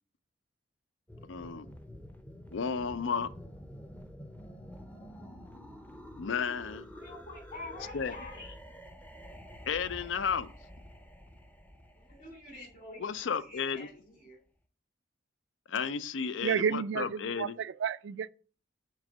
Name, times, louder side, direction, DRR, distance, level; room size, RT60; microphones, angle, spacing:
sound 1, 1.1-13.8, equal, 10° left, 0.6 m, -49 dB
voice 1, 1.2-1.7 2.5-3.3 6.2-6.9 7.9-8.1 9.7-10.5 13.0-13.9 15.7-17.6, left 6 dB, 80° left, 0.5 m, -33 dB
voice 2, 6.9-8.5 12.0-14.4, left 2 dB, 50° left, 3.2 m, -47 dB
voice 3, 16.4-18.3, right 7 dB, 70° right, 0.3 m, -31 dB
6.3 x 4.3 x 5.0 m
head